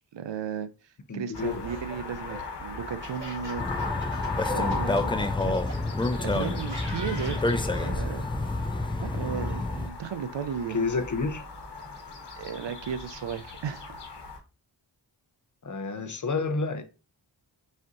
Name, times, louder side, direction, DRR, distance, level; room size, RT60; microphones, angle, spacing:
voice 1, 0.1-3.8 4.5-5.2 5.4-5.6 6.1-7.4 7.8-8.7 9.0-10.9 12.4-14.0, right 7 dB, 75° right, 0.6 m, -35 dB
voice 2, 1.1-1.7 10.7-11.4 15.6-16.8, left 4 dB, 45° left, 0.7 m, -29 dB
sound 1, 1.3-14.4, left 4 dB, 65° left, 1.2 m, -38 dB
Laughter, 1.4-5.8 6.4-8.0, right 1 dB, 25° right, 2.2 m, -43 dB
sound 2, 3.6-9.9, left 2 dB, 15° left, 0.3 m, -29 dB
4.3 x 3.6 x 2.5 m
wide cardioid pair, 60°, 44 cm